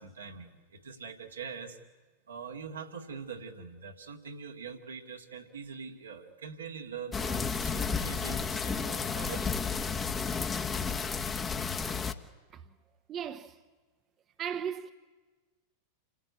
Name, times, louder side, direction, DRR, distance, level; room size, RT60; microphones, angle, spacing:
voice 1, 0.0-1.8 2.3-9.5, right 6 dB, 80° right, 2.0 m, -43 dB
sound 1, 7.1-12.1, left 5 dB, 20° left, 1.1 m, -32 dB
voice 2, 13.1-13.6 14.4-14.9, right 8 dB, 35° right, 0.9 m, -36 dB
28.0 x 15.5 x 9.5 m
figure-of-eight pair, 90°, 0 cm